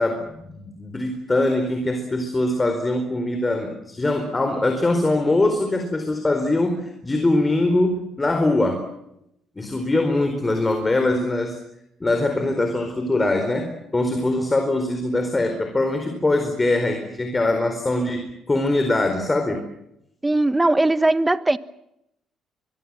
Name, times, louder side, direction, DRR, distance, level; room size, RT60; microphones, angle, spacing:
voice 1, 0.0-8.9 9.6-11.6 12.0-19.6, left 2 dB, 20° left, 6 dB, 4.3 m, -22 dB
voice 2, 20.2-21.6, right 2 dB, 15° right, 14 dB, 1.2 m, -19 dB
24.5 x 22.5 x 7.6 m, 0.81 s
cardioid pair, 85°, 0 cm